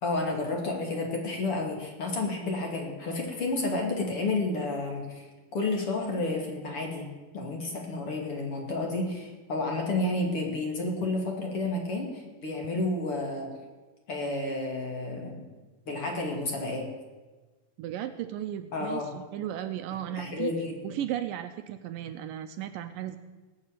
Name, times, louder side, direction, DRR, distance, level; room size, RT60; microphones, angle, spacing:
voice 1, 0.0-7.1 7.3-13.5 14.1-15.4 15.9-16.9 18.7-19.1 20.1-20.7, left 2 dB, 40° left, 1 dB, 2.9 m, -31 dB
voice 2, 17.8-20.5 20.8-23.2, right 11 dB, 75° right, 9 dB, 2.2 m, -35 dB
19.0 x 6.8 x 9.1 m, 1.3 s
omnidirectional pair, 4.2 m